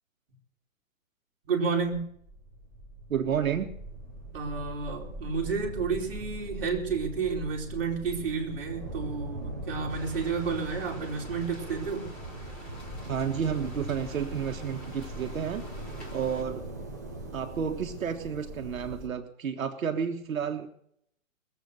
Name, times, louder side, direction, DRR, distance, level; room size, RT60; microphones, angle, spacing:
voice 1, 1.4-2.0 4.3-12.1, right 5 dB, 45° right, 0 dB, 3.2 m, -31 dB
sound 1, 2.1-19.1, right 1 dB, 15° right, 0.7 m, -41 dB
voice 2, 3.1-3.7 13.1-15.6 16.1-16.6 17.3-20.7, right 7 dB, 90° right, 5 dB, 1.4 m, -31 dB
sound 2, 9.9-16.4, equal, 5° left, 1.0 m, -47 dB
20.5 x 8.1 x 6.5 m, 0.70 s
hypercardioid pair, 180°, 40 cm